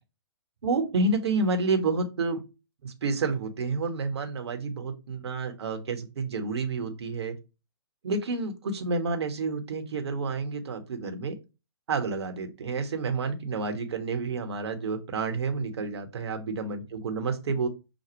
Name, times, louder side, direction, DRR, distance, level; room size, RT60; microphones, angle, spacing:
voice 1, 0.6-2.4 2.8-7.3 8.0-11.3 11.9-17.7, right 3 dB, 65° right, 5 dB, 1.1 m, -29 dB
6.0 x 2.3 x 3.0 m, 0.28 s
figure-of-eight pair, 125°, 15 cm